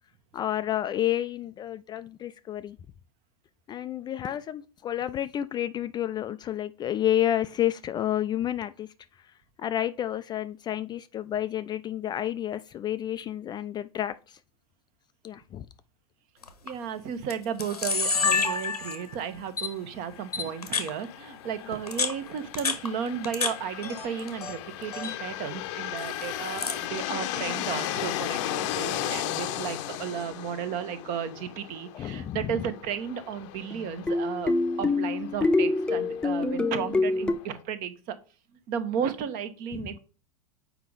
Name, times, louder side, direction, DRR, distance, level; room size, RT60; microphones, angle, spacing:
voice 1, 0.3-2.8 3.7-8.9 9.6-14.4 15.2-15.7 31.9-32.6 39.7-39.8, left 11 dB, 20° left, 11 dB, 0.4 m, -30 dB
Camera, 16.4-16.7 17.3-17.4 17.6-19.1 19.6-19.7 20.3-20.9 21.7-23.5 23.8-24.5 24.8-25.2 26.0-26.8, left 5 dB, 90° left, 1.1 m, -29 dB
voice 2, 16.6-38.2 38.7-40.0, right 8 dB, 45° right, 11 dB, 1.1 m, -34 dB
sound 1, 20.0-37.6, left 13 dB, 50° left, 0.7 m, -36 dB
sound 2, 33.7-37.3, left 3 dB, 5° left, 0.8 m, -26 dB
7.1 x 4.7 x 3.9 m, 0.35 s
hypercardioid pair, 95°, 19 cm